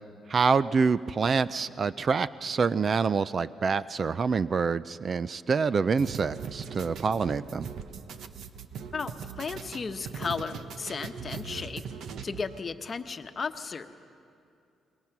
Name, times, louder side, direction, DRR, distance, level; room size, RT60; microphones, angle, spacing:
voice 1, 0.3-7.7, right 5 dB, 45° right, 17 dB, 0.4 m, -26 dB
sound 1, 6.0-12.6, right 6 dB, 70° right, 1.0 m, -40 dB
voice 2, 8.9-11.8 12.2-13.9, left 5 dB, 40° left, 8 dB, 1.1 m, -35 dB
28.0 x 22.0 x 6.0 m, 2.5 s
cardioid pair, 90°, 0 cm